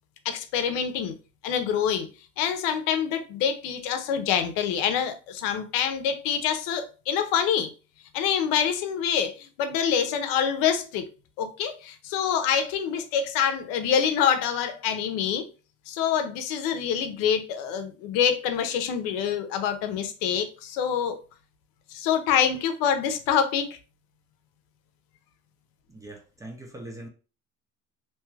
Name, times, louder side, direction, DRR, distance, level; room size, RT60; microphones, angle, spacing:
voice 1, 0.2-1.2 1.4-2.1 2.4-7.7 8.1-11.1 11.4-15.4 15.9-21.2 21.9-23.7, left 8 dB, 90° left, 0.6 m, -26 dB
voice 2, 25.9-27.1, right 1 dB, 10° right, 0.3 m, -41 dB
2.8 x 2.3 x 3.1 m
cardioid pair, 155°, 33 cm